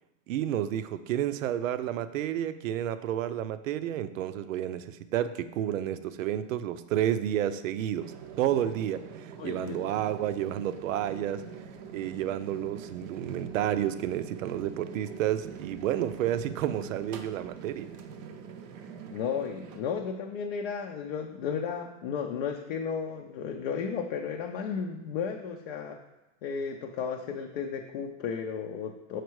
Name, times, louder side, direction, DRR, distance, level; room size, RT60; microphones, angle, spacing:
voice 1, 0.3-11.4 11.9-17.9, right 11 dB, 90° right, 12 dB, 0.6 m, -30 dB
sound 1, 8.0-19.8, right 7 dB, 35° right, 0.5 m, -44 dB
voice 2, 9.4-9.8 19.1-26.0 26.4-29.2, left 6 dB, 45° left, 3 dB, 0.5 m, -34 dB
6.5 x 4.6 x 4.6 m, 1.0 s
supercardioid pair, 160°, 38 cm